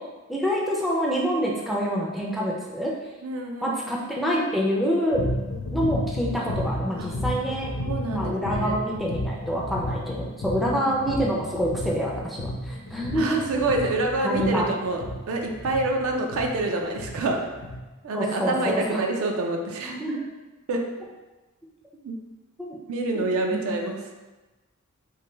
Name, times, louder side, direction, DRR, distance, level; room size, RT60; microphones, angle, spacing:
voice 1, 0.3-2.9 3.6-5.2 5.7-7.7 8.1-13.4 14.2-14.7 18.1-19.1 19.8-20.2 22.6-22.8 23.1-23.8, equal, ahead, -4 dB, 0.4 m, -27 dB
voice 2, 3.2-3.8 7.0-7.1 7.7-8.8 10.6-11.0 13.1-17.4 18.0-19.9 20.7-20.9 22.0-22.2 22.9-24.0, right 2 dB, 65° right, 2 dB, 0.4 m, -27 dB
sound 1, 5.1-17.8, left 1 dB, 60° left, 0.6 m, -32 dB
3.1 x 2.2 x 3.2 m, 1.2 s
head